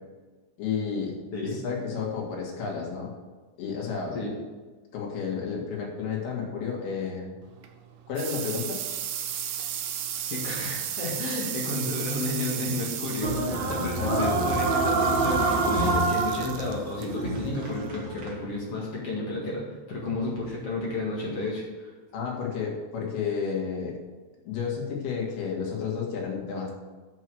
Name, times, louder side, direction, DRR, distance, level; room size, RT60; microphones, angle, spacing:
voice 1, 0.6-1.2 1.4-3.1 3.6-4.2 4.9-7.3 8.1-8.8 14.0-14.5 22.1-24.0 24.5-26.7, left 6 dB, 85° left, -2 dB, 4.0 m, -31 dB
sound 1, 7.4-18.7, right 9 dB, 70° right, 2.1 m, -35 dB
voice 2, 10.3-13.3 13.7-21.9, left 2 dB, 45° left, -4 dB, 2.3 m, -32 dB
sound 2, 13.2-18.3, right 3 dB, 50° right, 1.4 m, -26 dB
8.0 x 6.3 x 7.8 m, 1.3 s
omnidirectional pair, 4.4 m